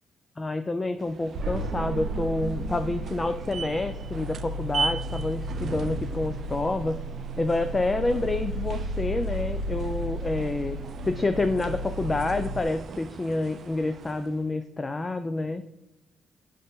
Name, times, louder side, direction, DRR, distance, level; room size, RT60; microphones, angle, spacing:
voice 1, 0.4-7.0 7.4-10.8 11.0-15.6, left 2 dB, 25° left, 10 dB, 0.5 m, -28 dB
sound 1, 1.0-14.5, right 5 dB, 55° right, 0.5 m, -39 dB
sound 2, 1.3-12.6, right 1 dB, 75° right, 1.0 m, -33 dB
7.9 x 6.5 x 3.7 m, 0.92 s
cardioid pair, 90°, 0 cm